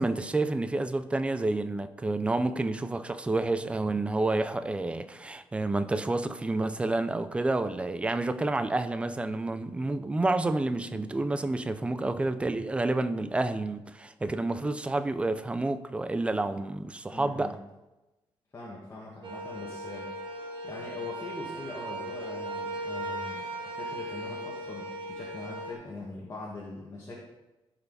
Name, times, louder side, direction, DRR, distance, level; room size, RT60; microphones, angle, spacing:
voice 1, 0.0-17.5, right 2 dB, 10° right, 0.4 m, -29 dB
voice 2, 17.1-17.5 18.5-20.1 20.6-27.2, left 2 dB, 30° left, 1.6 m, -42 dB
sound 1, 19.2-25.7, right 1 dB, 55° right, 1.6 m, -38 dB
14.5 x 5.7 x 4.1 m
cardioid pair, 155°, 10 cm